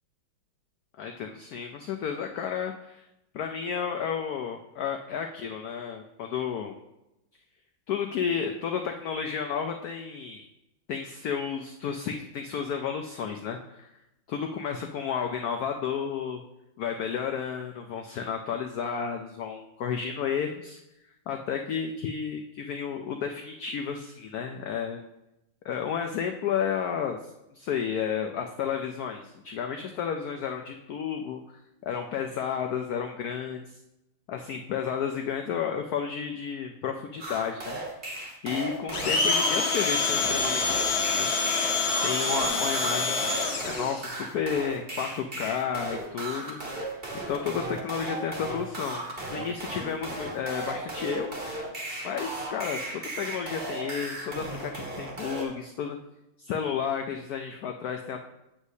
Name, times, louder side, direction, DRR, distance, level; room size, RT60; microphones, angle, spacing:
voice 1, 1.0-3.1 3.3-6.7 7.9-10.4 10.9-13.9 14.3-16.4 16.8-20.8 21.3-25.0 25.6-33.8 34.3-37.8 38.4-41.4 42.0-43.3 43.6-47.0 47.3-51.5 52.0-56.0 56.4-58.2, left 7 dB, 85° left, 4 dB, 0.8 m, -32 dB
sound 1, 37.2-55.5, right 2 dB, 35° right, 1.2 m, -36 dB
Domestic sounds home sounds, 38.9-44.0, left 4 dB, 55° left, 1.3 m, -26 dB
8.0 x 7.1 x 2.7 m, 0.90 s
omnidirectional pair, 2.2 m